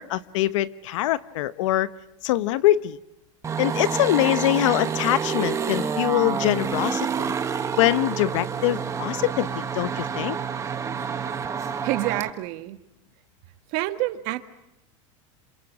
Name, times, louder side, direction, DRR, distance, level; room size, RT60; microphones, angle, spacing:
voice 1, 0.0-1.9 2.2-3.0 3.6-7.3 7.8-10.4, left 15 dB, 70° left, 14 dB, 1.1 m, -23 dB
sound 1, 3.4-12.3, right 6 dB, 20° right, 1.5 m, -28 dB
voice 2, 11.8-12.8 13.7-14.5, right 17 dB, 55° right, 9 dB, 1.7 m, -27 dB
28.0 x 27.5 x 7.4 m, 0.84 s
supercardioid pair, 140°, 16 cm